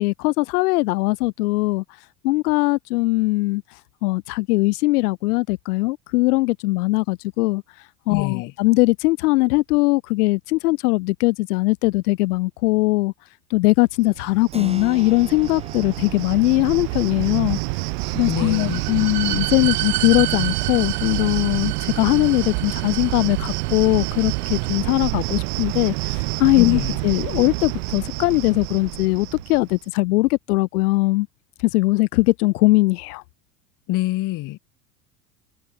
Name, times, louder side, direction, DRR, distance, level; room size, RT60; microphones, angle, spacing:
voice 1, 0.0-1.8 2.2-3.6 4.0-7.6 8.1-13.1 13.5-17.6 18.1-31.3 31.7-33.2, left 21 dB, 65° left, 1.5 m, -20 dB
voice 2, 8.1-8.5 18.3-19.0 26.6-27.0 33.9-34.6, left 18 dB, 40° left, 1.1 m, -26 dB
Cricket, 14.1-29.8, right 40 dB or more, 50° right, 0.7 m, -28 dB
Keyboard (musical), 14.5-24.9, right 3 dB, 10° right, 2.9 m, -44 dB
sound 1, 18.0-24.8, right 19 dB, 65° right, 1.7 m, -31 dB
hypercardioid pair, 80°, 50 cm